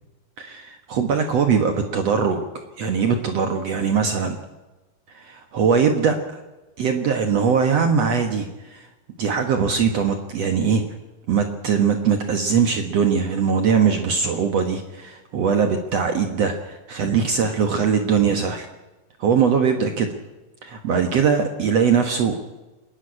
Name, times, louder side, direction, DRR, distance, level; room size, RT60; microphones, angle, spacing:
voice 1, 0.4-2.5 2.8-4.4 5.1-6.2 6.8-8.9 9.2-10.8 11.3-18.7 19.2-20.1 20.6-22.6, right 6 dB, 55° right, 6 dB, 2.0 m, -21 dB
26.0 x 11.0 x 9.8 m, 1.1 s
omnidirectional pair, 4.1 m